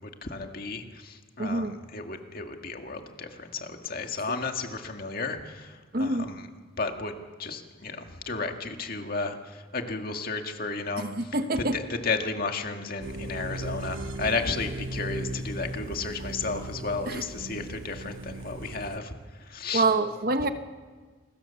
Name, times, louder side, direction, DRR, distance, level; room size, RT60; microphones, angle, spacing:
voice 1, 0.0-6.5 6.8-19.9, left 4 dB, 45° left, 4 dB, 2.0 m, -33 dB
voice 2, 1.4-1.8 5.9-6.3 11.0-11.8 17.1-17.2 19.7-20.5, right 2 dB, 45° right, 8 dB, 1.1 m, -26 dB
sound 1, 13.0-19.0, right 1 dB, 75° right, 1.1 m, -37 dB
28.5 x 21.0 x 7.1 m, 1.5 s
head